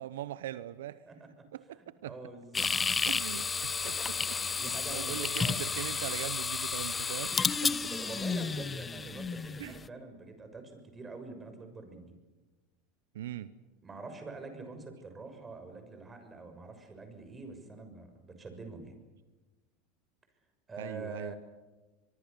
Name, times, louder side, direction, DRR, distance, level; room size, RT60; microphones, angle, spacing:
voice 1, 0.0-1.0 1.5-2.2 3.1-7.4 7.6-7.8 9.6-9.8 13.1-13.5 20.8-21.3, right 12 dB, 80° right, 15 dB, 0.8 m, -41 dB
voice 2, 1.1-1.4 2.0-2.7 4.2-6.0 7.6-12.1 13.8-19.0 20.7-21.3, right 3 dB, 20° right, 7 dB, 6.6 m, -45 dB
sound 1, 2.5-9.8, left 5 dB, 20° left, 0.8 m, -32 dB
24.0 x 23.5 x 7.0 m, 1.2 s
hypercardioid pair, 90°, 0 cm